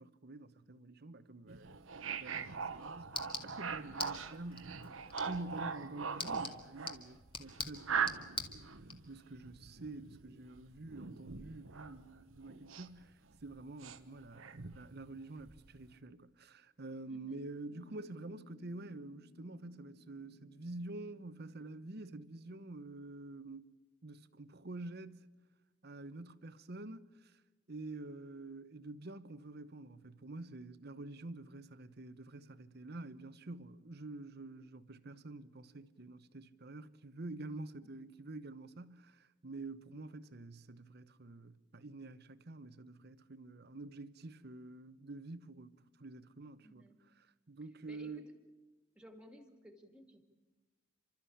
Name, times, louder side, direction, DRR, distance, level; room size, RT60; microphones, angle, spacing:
voice 1, 0.0-1.8 2.2-4.8 5.3-8.6 9.1-23.7 24.0-25.3 25.8-27.4 27.7-46.8 47.5-48.2, right 2 dB, 55° right, 1.0 m, -48 dB
sound 1, 1.5-13.1 13.3-14.9 15.4-15.9, right 6 dB, 85° right, 1.2 m, -42 dB
sound 2, 2.3-9.0, left 4 dB, 25° left, 1.9 m, -46 dB
voice 2, 17.1-17.4 37.8-37.9 46.6-47.0 47.9-48.3 49.0-50.2, equal, 5° right, 2.3 m, -57 dB
Piano, 17.7-22.8, left 2 dB, 80° left, 2.0 m, -62 dB
30.0 x 13.0 x 8.6 m
head